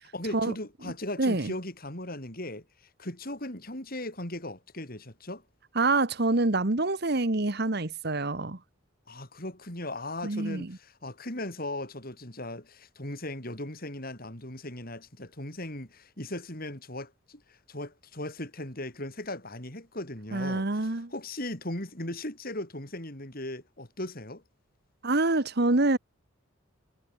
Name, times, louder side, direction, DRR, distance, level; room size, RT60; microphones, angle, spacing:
voice 1, 0.1-2.6 3.0-5.4 9.1-24.4, left 1 dB, 45° left, 6.1 m, -38 dB
voice 2, 1.2-1.5 5.7-8.6 10.2-10.8 20.3-21.1 25.0-26.0, right 2 dB, 50° right, 1.4 m, -26 dB
head